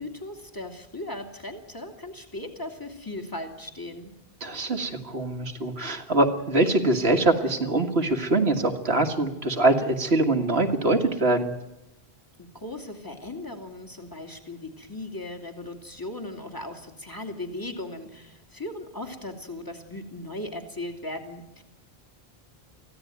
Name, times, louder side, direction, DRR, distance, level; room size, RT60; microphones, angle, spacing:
voice 1, 0.0-4.1 12.4-21.6, left 1 dB, 20° left, 4 dB, 2.7 m, -37 dB
voice 2, 4.4-11.5, right 2 dB, 75° right, 4 dB, 2.1 m, -23 dB
24.0 x 16.0 x 9.5 m, 0.92 s
omnidirectional pair, 1.1 m